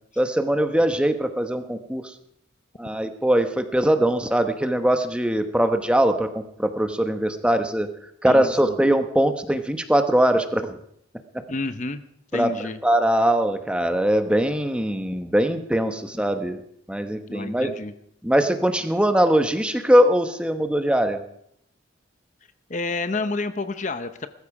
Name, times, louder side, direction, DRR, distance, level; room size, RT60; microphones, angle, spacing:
voice 1, 0.2-2.1 2.8-7.9 8.2-10.8 12.3-12.5 12.8-16.6 16.9-17.7 18.2-21.2, right 1 dB, 5° right, 7 dB, 1.0 m, -21 dB
voice 2, 8.2-8.8 11.5-12.0 12.3-12.8 17.3-17.9 22.7-24.3, left 3 dB, 35° left, 10 dB, 0.7 m, -29 dB
20.5 x 14.0 x 4.8 m, 0.71 s
head